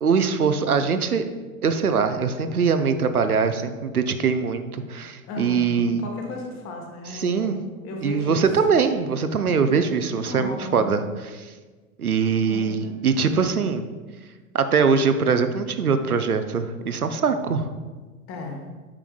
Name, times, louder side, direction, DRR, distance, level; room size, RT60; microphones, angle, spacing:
voice 1, 0.0-1.2 1.6-6.1 7.1-7.6 8.0-11.5 12.0-13.9 14.5-17.7, right 5 dB, 85° right, 9 dB, 0.6 m, -22 dB
voice 2, 5.2-7.6 7.8-8.4 9.7-9.9 10.2-11.0 12.5-13.0 18.3-18.6, left 2 dB, 30° left, 1 dB, 1.3 m, -35 dB
8.8 x 5.7 x 2.3 m, 1.3 s
figure-of-eight pair, 90°, 43 cm